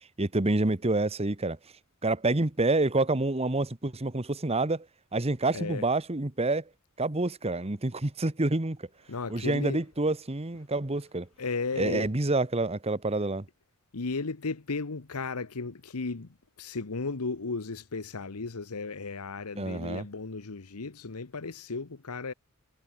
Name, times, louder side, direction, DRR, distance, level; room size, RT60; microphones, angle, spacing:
voice 1, 0.2-1.6 2.0-4.9 5.1-6.6 7.0-8.9 9.3-11.3 11.8-13.5 19.5-20.0, right 2 dB, 30° right, 1.2 m, -28 dB
voice 2, 5.5-5.8 9.1-9.8 11.4-12.1 13.9-16.3 16.6-22.3, left 4 dB, 85° left, 1.1 m, -35 dB
head